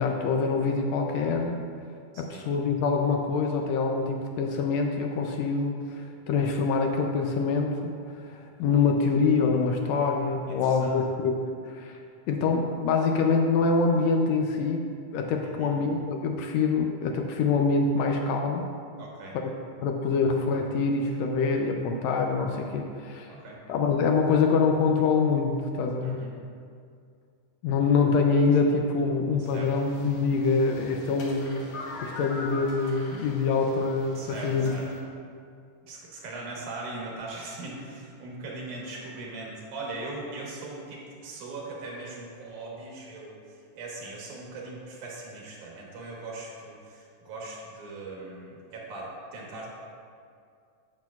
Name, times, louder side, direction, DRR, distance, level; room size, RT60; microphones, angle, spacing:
voice 1, 0.0-1.6 2.2-11.4 11.6-12.0 12.3-14.8 15.1-18.7 19.8-23.3 23.7-26.2 27.6-31.7 32.0-34.7, left 4 dB, 80° left, 2 dB, 1.6 m, -25 dB
voice 2, 2.1-2.4 10.5-10.9 15.5-15.8 19.0-19.4 23.3-23.6 26.0-26.3 29.4-29.7 34.2-34.9 35.8-49.7, right 2 dB, 85° right, -2 dB, 2.7 m, -40 dB
sound 1, 29.4-35.0, left 2 dB, 65° left, 2.3 m, -42 dB
8.8 x 7.7 x 2.3 m, 2.3 s
omnidirectional pair, 3.5 m